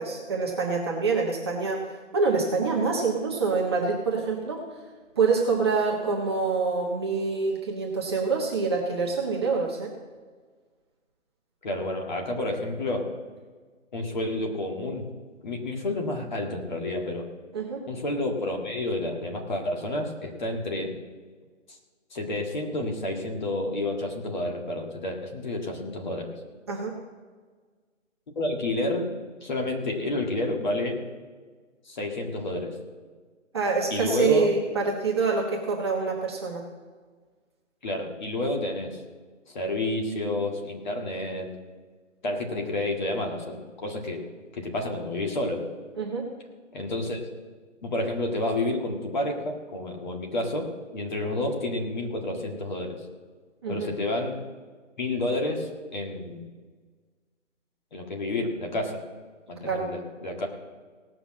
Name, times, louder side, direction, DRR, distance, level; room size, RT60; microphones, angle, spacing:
voice 1, 0.0-4.6 5.2-9.9 17.5-17.8 26.7-26.9 33.5-36.6 45.9-46.2 53.6-53.9 59.6-59.9, right 4 dB, 20° right, -2 dB, 1.1 m, -26 dB
voice 2, 11.6-13.1 13.9-15.1 15.4-17.3 17.9-20.9 22.1-26.3 28.4-29.1 29.4-31.0 31.9-32.8 33.9-34.5 37.8-39.0 39.5-41.5 42.2-44.2 44.5-45.6 46.7-47.2 47.8-50.7 50.9-53.0 53.7-54.4 55.0-56.4 57.9-59.0 59.5-60.5, left 2 dB, 35° left, 1 dB, 1.8 m, -30 dB
17.5 x 6.0 x 7.5 m, 1.5 s
hypercardioid pair, 165°, 39 cm